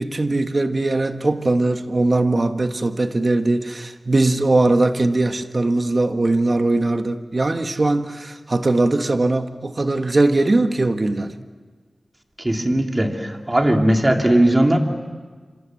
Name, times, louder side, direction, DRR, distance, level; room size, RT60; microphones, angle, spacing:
voice 1, 0.0-11.3, right 2 dB, 50° right, 1.6 m, -20 dB
voice 2, 12.4-14.8, right 1 dB, 30° right, 3.0 m, -18 dB
27.0 x 26.0 x 7.8 m
wide cardioid pair, 55°, 0 cm